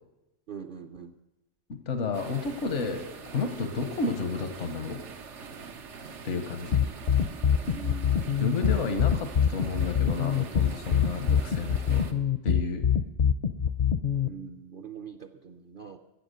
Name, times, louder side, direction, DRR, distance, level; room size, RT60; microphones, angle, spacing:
voice 1, 0.5-1.1 7.6-8.6 14.2-16.0, right 6 dB, 55° right, 4 dB, 0.7 m, -43 dB
voice 2, 1.7-5.0 6.2-6.8 8.4-12.1 12.4-12.9, left 4 dB, 85° left, 8 dB, 1.4 m, -31 dB
sound 1, 2.1-12.1, right 5 dB, 85° right, 1.3 m, -44 dB
sound 2, 6.7-14.3, left 8 dB, 55° left, 0.6 m, -24 dB
14.5 x 8.0 x 6.7 m, 0.97 s
omnidirectional pair, 1.2 m